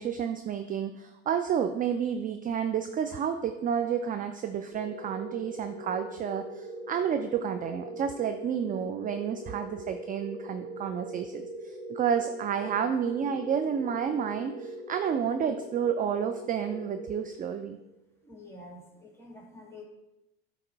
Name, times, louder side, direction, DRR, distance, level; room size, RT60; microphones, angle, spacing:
voice 1, 0.0-17.8, right 8 dB, 25° right, 8 dB, 0.4 m, -30 dB
sound 1, 4.7-17.9, right 1 dB, 75° right, 1.5 m, -41 dB
voice 2, 18.2-19.8, left 2 dB, 10° left, 0 dB, 1.9 m, -48 dB
8.2 x 2.9 x 4.6 m, 0.92 s
hypercardioid pair, 85°, 32 cm